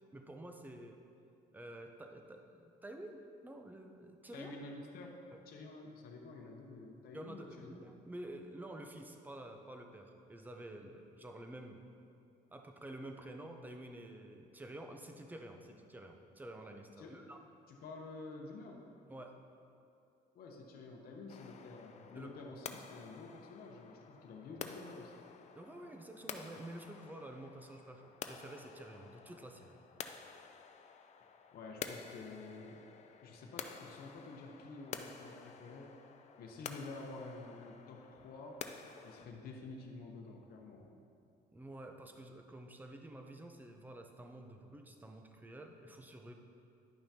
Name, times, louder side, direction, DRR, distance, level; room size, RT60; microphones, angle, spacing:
voice 1, 0.1-1.0 1.5-4.5 5.3-5.4 7.1-11.8 12.5-17.4 19.1-19.4 22.1-22.3 25.5-29.8 41.5-46.3, right 1 dB, 10° right, 4 dB, 0.6 m, -50 dB
voice 2, 4.3-5.2 5.5-7.8 17.0-17.2 17.7-18.8 20.3-25.1 31.5-32.8 33.2-35.9 36.4-38.7 39.0-40.9, left 3 dB, 60° left, 0 dB, 0.9 m, -49 dB
sound 1, 21.3-39.3, left 6 dB, 40° left, 0.5 m, -50 dB
10.5 x 5.6 x 2.8 m, 2.5 s
cardioid pair, 110°, 17 cm